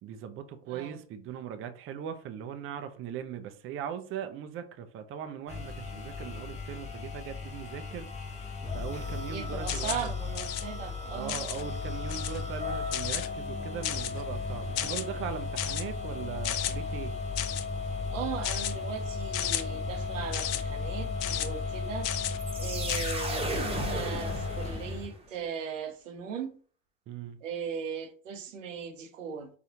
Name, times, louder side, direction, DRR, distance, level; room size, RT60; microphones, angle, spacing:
voice 1, 0.0-8.4 8.7-10.1 11.1-17.1 27.1-27.4, right 8 dB, 35° right, 0.5 m, -39 dB
voice 2, 0.7-1.0 9.3-11.4 18.1-22.1 22.6-26.5 27.4-29.5, right 7 dB, 85° right, 0.7 m, -38 dB
sound 1, 5.5-25.1, left 4 dB, 20° left, 1.0 m, -35 dB
sound 2, 9.7-10.1 10.4-10.6 11.3-11.6 12.1-12.4 12.9-13.3 13.8-14.2 14.8-15.0 15.6-15.8 16.4-16.7 17.4-17.7 18.4-18.7 19.3-19.6 20.3-20.6 21.2-21.5 22.0-22.4 22.9-23.1, left 12 dB, 60° left, 0.5 m, -33 dB
sound 3, 22.4-25.2, right 2 dB, 15° right, 1.1 m, -35 dB
4.2 x 2.4 x 2.7 m
hypercardioid pair, 75°, 37 cm